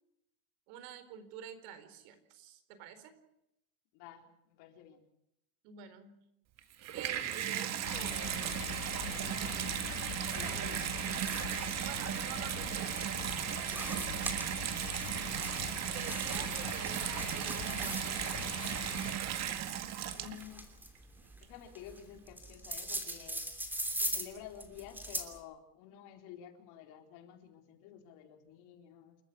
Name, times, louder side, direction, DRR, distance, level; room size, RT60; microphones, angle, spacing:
voice 1, 0.7-3.1 5.6-6.2 6.8-9.7 10.4-10.8 11.2-11.4 11.8-14.1 15.9-18.8, right 9 dB, 60° right, 11 dB, 4.3 m, -49 dB
voice 2, 3.9-5.1 9.6-10.0 10.3-11.1 14.0-14.2 20.0-20.7 21.4-23.5 24.0-29.2, left 9 dB, 55° left, 4 dB, 4.2 m, -51 dB
Water tap faucet / Bathtub (filling or washing), 6.6-20.7 21.4-21.5, right 10 dB, 35° right, 1.9 m, -36 dB
sound 1, 7.8-19.1, left 11 dB, 85° left, 5.0 m, -44 dB
sound 2, 10.7-25.4, right 1 dB, 5° right, 3.0 m, -42 dB
29.0 x 14.0 x 8.6 m, 0.80 s
cardioid pair, 155°, 45 cm